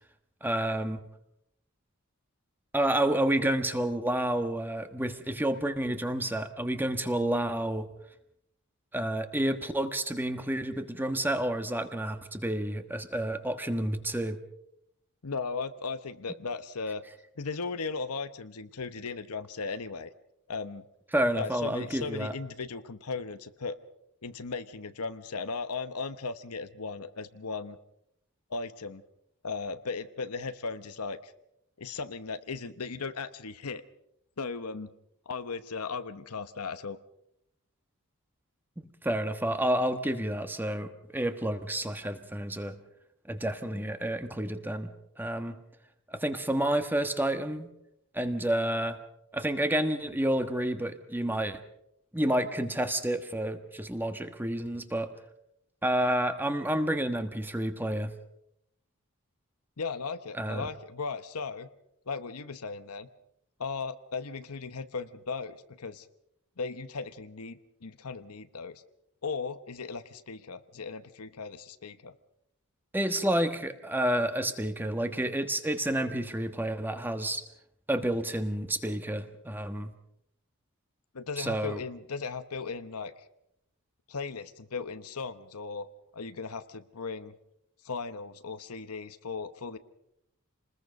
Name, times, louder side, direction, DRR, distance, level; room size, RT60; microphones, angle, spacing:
voice 1, 0.4-1.0 2.7-7.9 8.9-14.4 21.1-22.3 38.8-42.7 43.3-44.9 45.2-45.6 46.1-47.7 48.1-49.0 49.3-51.6 52.1-55.1 55.8-58.1 60.4-60.7 72.9-77.4 77.9-79.9 81.4-81.8, right 1 dB, 10° right, 8 dB, 1.3 m, -29 dB
voice 2, 15.2-17.0 17.4-20.1 20.5-20.9 21.4-23.8 24.2-27.8 28.5-29.0 29.4-31.3 31.8-33.8 34.4-34.9 35.3-37.0 59.8-61.7 62.1-63.1 63.6-66.1 66.6-68.8 69.2-72.1 81.1-83.3 84.1-85.9 86.1-87.3 87.8-89.8, left 4 dB, 85° left, 11 dB, 1.0 m, -37 dB
27.5 x 20.5 x 5.3 m, 0.78 s
head